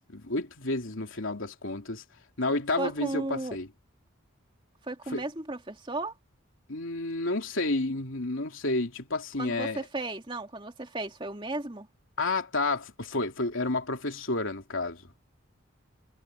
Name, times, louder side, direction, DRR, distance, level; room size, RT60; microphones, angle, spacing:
voice 1, 0.1-2.0 2.4-3.7 5.1-5.2 6.7-9.8 12.2-15.3, left 2 dB, 70° left, 3.0 m, -30 dB
voice 2, 2.8-3.6 4.8-6.1 9.4-11.9, right 2 dB, 25° right, 2.4 m, -34 dB
head